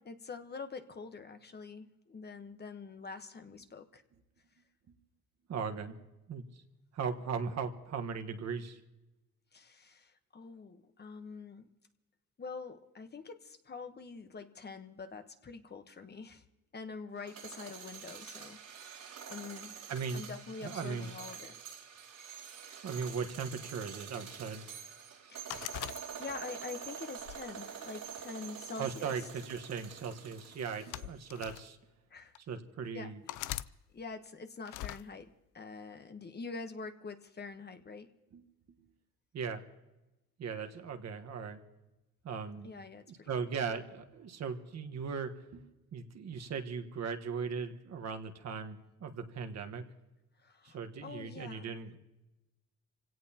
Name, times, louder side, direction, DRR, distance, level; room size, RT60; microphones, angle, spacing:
voice 1, 0.0-4.0 9.5-11.7 12.4-16.4 16.7-19.8 20.1-21.5 25.3-25.9 26.2-29.2 32.1-32.4 32.9-33.2 33.9-38.1 42.6-43.3 50.4-51.8, left 4 dB, 35° left, 8 dB, 1.1 m, -46 dB
voice 2, 5.5-5.9 6.3-6.4 6.9-8.8 19.9-20.2 20.6-21.1 22.8-24.6 28.8-31.8 32.5-33.2 38.3-38.4 39.3-39.6 40.4-41.6 42.2-42.7 43.1-45.7 45.9-49.8 50.6-52.0, right 5 dB, 60° right, 7 dB, 1.4 m, -38 dB
sound 1, 17.2-31.3, right 8 dB, 80° right, 3.9 m, -47 dB
sound 2, 25.5-26.6 27.2-28.4 29.3-29.6 30.6-31.7 32.4-32.5 33.3-33.7 34.7-35.0, left 15 dB, 85° left, 0.5 m, -42 dB
27.0 x 17.0 x 2.9 m, 1.0 s
cardioid pair, 90°, 30 cm